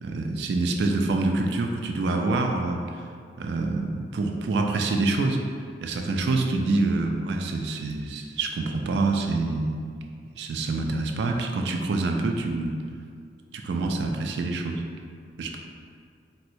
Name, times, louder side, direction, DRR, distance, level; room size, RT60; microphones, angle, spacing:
voice 1, 0.0-2.8 3.4-5.4 5.8-9.8 10.4-12.7 13.6-14.8 15.4-15.6, right 3 dB, 70° right, 3 dB, 0.3 m, -26 dB
4.2 x 2.1 x 2.6 m, 2.2 s
head